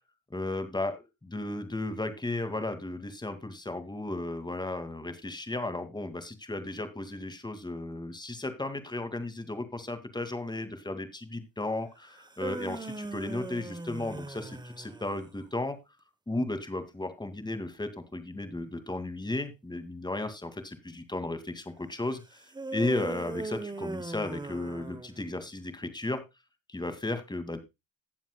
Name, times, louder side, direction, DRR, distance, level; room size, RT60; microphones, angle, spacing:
voice 1, 0.3-15.8 16.3-22.2 22.7-26.2 26.7-27.6, left 2 dB, 15° left, 10 dB, 2.2 m, -34 dB
sound 1, 12.1-15.4 22.5-25.5, right 2 dB, 15° right, 1.1 m, -39 dB
18.5 x 7.1 x 2.3 m, 0.23 s
cardioid pair, 90°, 30 cm